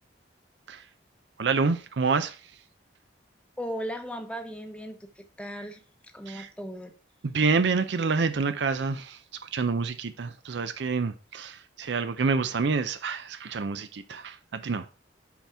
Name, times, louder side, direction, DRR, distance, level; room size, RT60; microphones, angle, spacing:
voice 1, 1.4-2.5 6.3-6.5 7.2-14.9, right 4 dB, 70° right, 0.5 m, -28 dB
voice 2, 3.6-5.8 6.1-6.9, equal, 5° left, 0.8 m, -37 dB
5.7 x 4.3 x 5.7 m
head